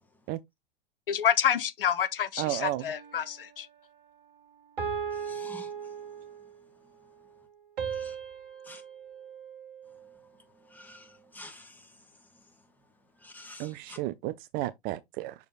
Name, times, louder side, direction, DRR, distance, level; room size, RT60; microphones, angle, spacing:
voice 1, 1.1-3.7, left 9 dB, 70° left, 0.8 m, -28 dB
voice 2, 2.4-2.8 13.6-15.3, right 15 dB, 35° right, 0.5 m, -32 dB
sound 1, 2.9-3.6 4.8-6.6 7.8-10.2, right 6 dB, 65° right, 1.6 m, -38 dB
voice 3, 5.1-6.2 6.8-6.9 7.9-8.2 8.6-8.8 9.9-12.6 13.2-14.0, left 2 dB, 5° left, 2.1 m, -51 dB
6.7 x 6.5 x 2.3 m
figure-of-eight pair, 90°, 29 cm